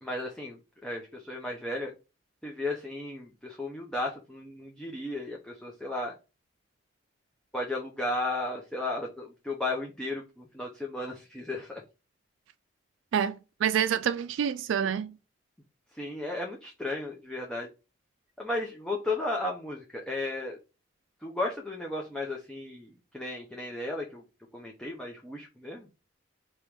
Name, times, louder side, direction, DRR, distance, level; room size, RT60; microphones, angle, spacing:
voice 1, 0.0-1.9 2.4-6.1 7.5-11.8 15.9-17.7 18.4-20.6 21.2-24.2 24.5-25.9, left 2 dB, 5° left, 0.6 m, -34 dB
voice 2, 13.1-15.1, right 8 dB, 80° right, 0.3 m, -27 dB
4.7 x 2.9 x 3.5 m
head